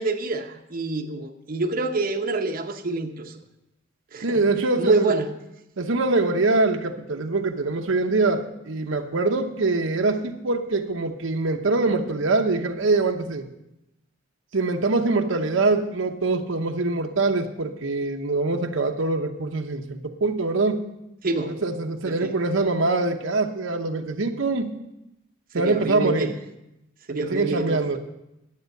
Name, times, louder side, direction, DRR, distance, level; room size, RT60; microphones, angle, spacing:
voice 1, 0.0-3.4 4.1-4.4 4.8-5.3 21.2-21.5 22.0-22.3 25.5-26.3 27.1-28.0, right 3 dB, 45° right, 3 dB, 0.8 m, -27 dB
voice 2, 4.2-5.2 5.8-13.5 14.5-20.8 21.5-24.8 25.5-26.3 27.2-28.0, right 3 dB, 75° right, 5 dB, 0.9 m, -23 dB
10.5 x 8.5 x 6.5 m, 0.88 s
head